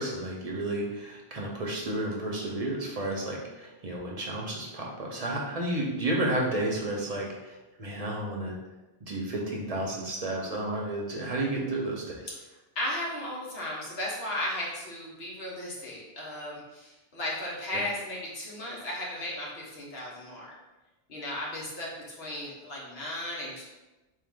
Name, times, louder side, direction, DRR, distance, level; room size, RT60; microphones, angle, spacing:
voice 1, 0.0-8.5 9.1-12.3 17.7-17.8, right 1 dB, 45° right, -2 dB, 0.7 m, -32 dB
voice 2, 12.7-20.5 21.1-23.6, left 1 dB, 75° left, -5 dB, 1.3 m, -35 dB
3.6 x 2.6 x 3.6 m, 1.1 s
omnidirectional pair, 1.1 m